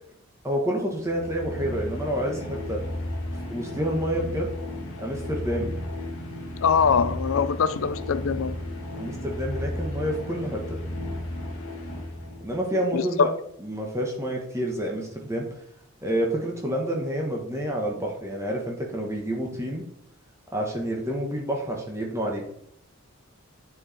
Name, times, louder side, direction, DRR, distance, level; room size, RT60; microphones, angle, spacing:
voice 1, 0.4-2.8 3.5-4.5 5.0-5.7 9.0-10.8 12.4-13.3 13.6-15.5 16.0-19.8 20.5-22.4, equal, 15° right, 1.3 m, -28 dB
sound 1, 1.0-12.6, left 1 dB, 90° left, 2.2 m, -34 dB
voice 2, 6.6-8.6 12.9-13.3, left 6 dB, 70° left, 0.4 m, -23 dB
9.9 x 4.8 x 4.3 m
head